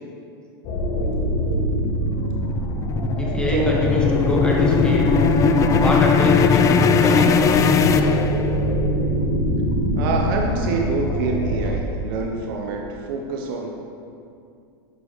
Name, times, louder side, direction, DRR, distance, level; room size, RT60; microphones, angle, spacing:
sound 1, 0.6-11.8, equal, 60° left, 1.2 m, -24 dB
sound 2, 1.6-8.8, left 6 dB, 25° left, 0.3 m, -19 dB
voice 1, 3.2-5.1 5.8-8.2, equal, 5° left, -3 dB, 1.5 m, -26 dB
voice 2, 10.0-13.7, right 4 dB, 60° right, 1 dB, 0.8 m, -26 dB
11.0 x 4.8 x 3.2 m, 2.5 s
hypercardioid pair, 105°, 13 cm